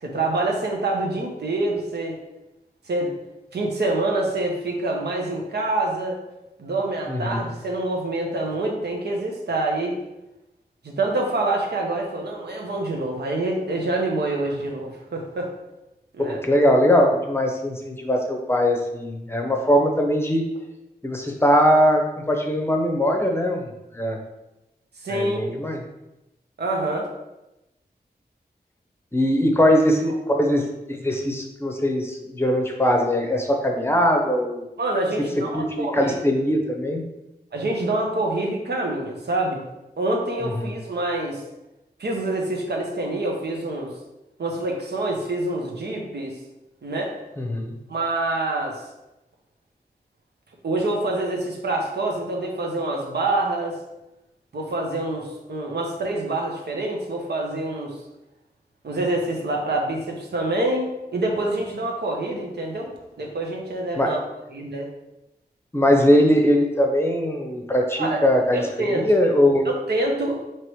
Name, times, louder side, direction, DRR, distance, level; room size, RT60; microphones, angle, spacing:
voice 1, 0.0-2.2 2.9-3.1 3.5-6.2 6.6-9.9 10.8-15.5 16.1-16.4 25.0-25.4 26.6-27.1 34.8-36.2 37.5-39.6 40.0-41.4 42.0-43.9 44.4-46.4 46.8-47.1 47.9-48.8 50.6-53.8 54.5-57.9 58.8-62.9 63.2-64.2 64.5-64.9 68.0-68.2 68.5-69.1 69.6-70.3, right 2 dB, 80° right, 0 dB, 0.8 m, -26 dB
voice 2, 7.1-7.4 16.2-20.4 21.0-22.0 22.3-23.7 23.9-24.2 25.1-25.8 29.1-30.6 30.9-34.6 35.5-37.0 40.6-40.7 47.4-47.7 64.0-64.1 65.7-69.7, equal, 15° left, 2 dB, 0.7 m, -21 dB
4.7 x 3.0 x 3.1 m, 0.95 s
wide cardioid pair, 100°, 17 cm